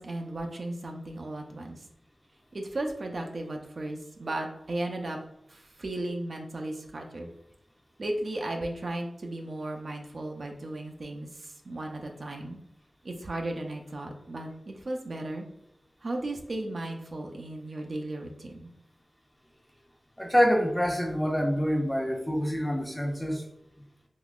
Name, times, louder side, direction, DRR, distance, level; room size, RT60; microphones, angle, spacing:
voice 1, 0.0-1.8 2.5-5.2 5.5-7.3 8.0-12.6 13.0-15.5 16.0-18.7, right 1 dB, 65° right, 2 dB, 0.5 m, -35 dB
voice 2, 20.2-23.4, equal, 10° left, 2 dB, 0.5 m, -26 dB
3.7 x 2.8 x 2.4 m, 0.77 s
wide cardioid pair, 70°, 0 cm